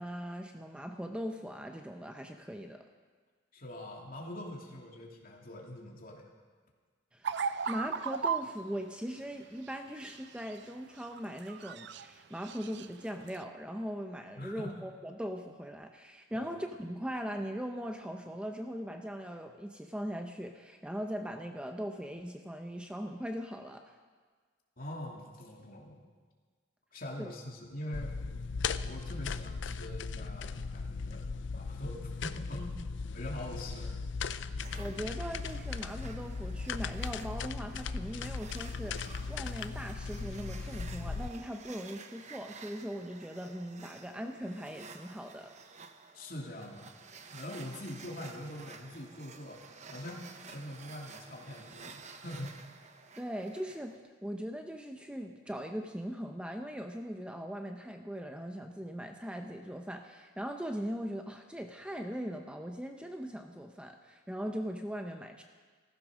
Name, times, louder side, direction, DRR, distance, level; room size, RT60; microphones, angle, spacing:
voice 1, 0.0-2.8 7.1-23.8 27.2-27.3 34.8-45.5 53.2-65.4, equal, 5° right, 4 dB, 0.7 m, -40 dB
voice 2, 3.5-6.2 14.4-14.9 16.3-16.5 24.8-26.0 26.9-28.1 28.8-31.3 31.5-32.8 33.1-33.9 34.5-34.6 46.1-46.9 47.3-49.6 49.9-52.6, left 1 dB, 50° left, -1 dB, 2.7 m, -43 dB
sound 1, 7.2-8.5 9.9-10.7 11.0-12.1 12.4-12.9 13.3-13.4, right 6 dB, 60° right, 0.5 m, -35 dB
sound 2, 27.9-41.3, left 5 dB, 65° left, 0.5 m, -38 dB
sound 3, 34.6-54.0, right 5 dB, 40° right, 0.9 m, -52 dB
15.5 x 15.0 x 6.3 m, 1.5 s
head